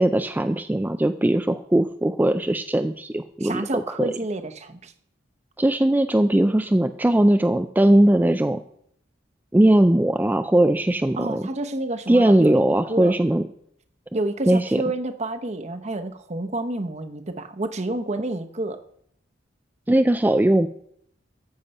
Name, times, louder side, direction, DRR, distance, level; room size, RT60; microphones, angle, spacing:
voice 1, 0.0-4.1 5.6-8.6 9.5-11.4 12.1-13.4 14.5-14.8 19.9-20.7, right 1 dB, 10° right, 8 dB, 0.4 m, -19 dB
voice 2, 3.4-4.9 11.2-13.2 14.1-18.8, right 2 dB, 40° right, 8 dB, 0.9 m, -29 dB
13.5 x 7.4 x 5.4 m, 0.69 s
head